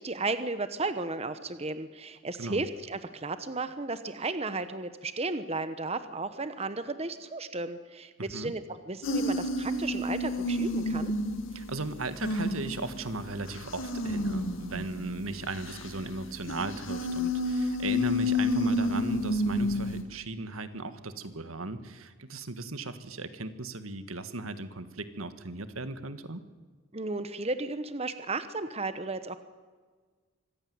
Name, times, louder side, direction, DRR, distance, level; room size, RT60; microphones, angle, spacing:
voice 1, 0.0-11.1 26.9-29.4, right 3 dB, 30° right, 11 dB, 1.0 m, -34 dB
voice 2, 8.2-8.5 11.5-26.4, right 2 dB, 85° right, 11 dB, 1.6 m, -37 dB
sound 1, 9.0-20.0, left 1 dB, 70° left, 2.5 m, -30 dB
25.0 x 15.5 x 9.6 m, 1.5 s
head